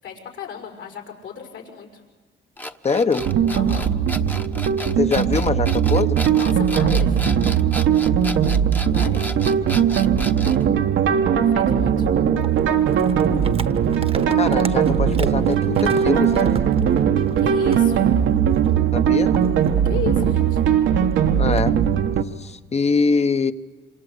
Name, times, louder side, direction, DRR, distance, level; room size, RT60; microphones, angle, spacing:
voice 1, 0.0-2.0 3.5-3.9 6.3-7.2 8.8-9.3 11.5-12.1 17.4-18.1 19.8-20.6, left 7 dB, 75° left, 2 dB, 6.2 m, -35 dB
sound 1, 2.6-10.6, equal, 10° left, 1.2 m, -33 dB
voice 2, 2.8-3.3 5.0-6.2 13.2-13.5 14.4-16.6 18.9-19.3 21.4-21.8 22.4-23.5, left 4 dB, 35° left, 10 dB, 1.2 m, -23 dB
sound 2, 3.2-22.2, right 8 dB, 75° right, 1.4 m, -19 dB
sound 3, 12.3-17.5 17.7-17.9 18.4-20.5 21.0-21.7, right 4 dB, 30° right, 1.2 m, -35 dB
26.5 x 26.0 x 8.2 m, 1.4 s
cardioid pair, 90°, 20 cm